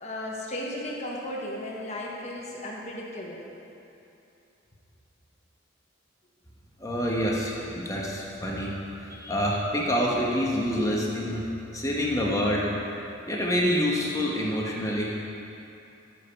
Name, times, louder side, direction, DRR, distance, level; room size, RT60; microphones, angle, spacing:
voice 1, 0.0-3.4, left 1 dB, 35° left, -3 dB, 1.4 m, -35 dB
voice 2, 6.8-11.4 11.7-12.7 13.3-15.1, equal, 15° left, -3 dB, 1.2 m, -27 dB
14.5 x 5.4 x 5.5 m, 2.8 s
head